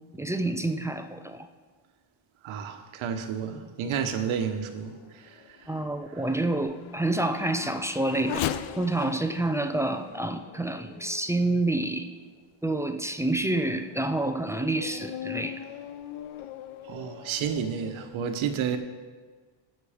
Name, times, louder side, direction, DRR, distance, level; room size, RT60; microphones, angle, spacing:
voice 1, 0.1-1.5 5.7-8.5 8.8-12.1 12.6-15.6, right 2 dB, 5° right, 0.5 m, -28 dB
voice 2, 2.4-5.7 16.8-18.8, right 7 dB, 70° right, 1.2 m, -31 dB
Race car auto racing / Accelerating revving vroom, 4.4-12.1 12.7-12.8 13.4-18.2, left 11 dB, 70° left, 0.7 m, -40 dB
16.0 x 6.5 x 5.1 m
cardioid pair, 110°, 50 cm